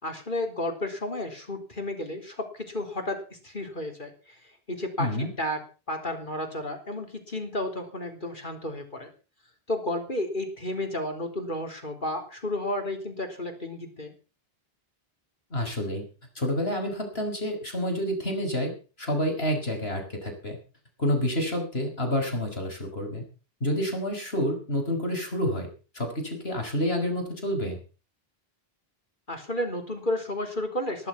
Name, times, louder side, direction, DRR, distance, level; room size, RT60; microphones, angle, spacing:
voice 1, 0.0-5.6 5.9-9.1 9.7-14.1 29.3-31.1, left 1 dB, 55° left, 4 dB, 4.0 m, -32 dB
voice 2, 5.0-5.3 15.5-16.0 16.4-18.7 19.0-20.6 21.0-23.2 23.6-25.7 25.9-27.8, equal, 80° left, 4 dB, 5.8 m, -28 dB
19.0 x 11.5 x 5.9 m, 0.36 s
omnidirectional pair, 1.0 m